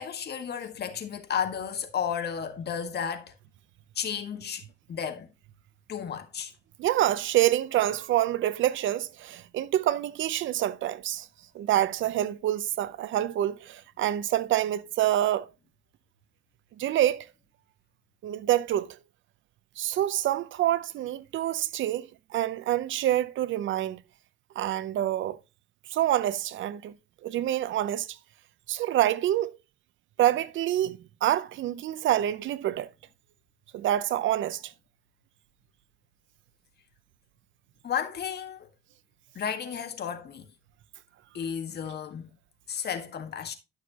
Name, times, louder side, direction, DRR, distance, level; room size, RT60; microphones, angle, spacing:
voice 1, 0.0-3.3 4.0-4.6 4.9-5.3 5.9-6.5 37.8-38.7 39.4-40.5 41.3-42.3 42.7-43.6, left 7 dB, 55° left, 1.7 m, -33 dB
voice 2, 6.8-11.3 11.5-15.5 16.8-17.3 18.2-19.0 19.8-24.0 24.6-25.4 25.9-26.9 27.2-28.2 28.7-29.6 30.2-32.9 33.7-34.7, right 12 dB, 75° right, 0.7 m, -27 dB
11.5 x 6.4 x 2.9 m
cardioid pair, 90°, 20 cm